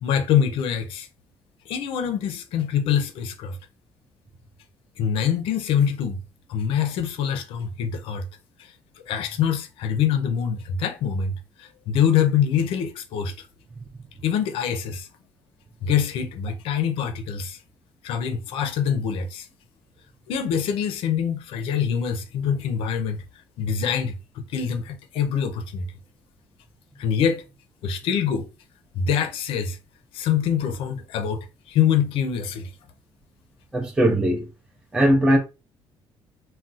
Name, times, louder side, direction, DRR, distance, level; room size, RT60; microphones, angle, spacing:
voice 1, 0.0-1.1 1.7-3.6 5.0-6.2 6.5-8.3 8.6-8.7 9.1-13.5 14.2-15.1 15.8-17.6 18.0-19.5 20.3-23.2 23.6-25.9 27.0-27.4 27.8-28.5 28.9-29.8 30.1-32.7, left 8 dB, 70° left, 0.5 m, -25 dB
voice 2, 33.7-34.5 34.9-35.4, right 1 dB, 5° right, 0.5 m, -19 dB
2.4 x 2.2 x 3.9 m
cardioid pair, 160°, 9 cm